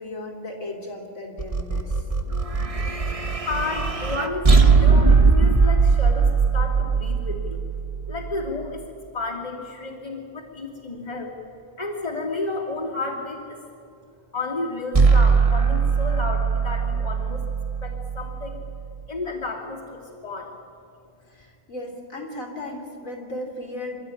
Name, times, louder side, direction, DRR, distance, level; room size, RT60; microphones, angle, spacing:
voice 1, 0.0-2.0 21.3-24.0, left 1 dB, 70° left, 0 dB, 3.6 m, -36 dB
sound 1, 1.4-8.7 14.9-19.0, right 4 dB, 25° right, 1.1 m, -20 dB
voice 2, 3.4-7.6 8.1-8.8 9.1-11.3 11.8-13.6 14.3-17.4 17.8-18.6 19.1-20.5, left 3 dB, 25° left, -6 dB, 2.9 m, -32 dB
26.5 x 12.5 x 9.8 m, 2.4 s
omnidirectional pair, 1.5 m